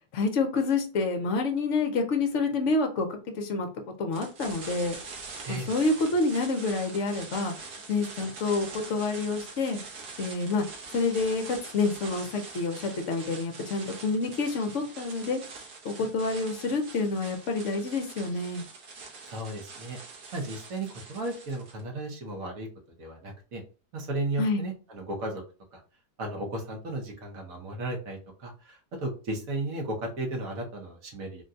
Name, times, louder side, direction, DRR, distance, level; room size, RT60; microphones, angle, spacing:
voice 1, 0.1-3.7 4.0-5.0 5.5-7.5 7.9-9.8 10.2-10.6 10.9-15.4 15.8-18.6 24.4-24.6, left 3 dB, 55° left, 4 dB, 0.9 m, -28 dB
sound 1, 4.1-21.8, right 4 dB, 75° right, 1.5 m, -44 dB
voice 2, 19.3-20.0 20.3-22.7 23.0-23.6 23.9-25.4 25.7-25.8 26.2-31.4, right 2 dB, 60° right, 1 dB, 1.2 m, -34 dB
3.7 x 2.2 x 2.6 m, 0.35 s
omnidirectional pair, 1.8 m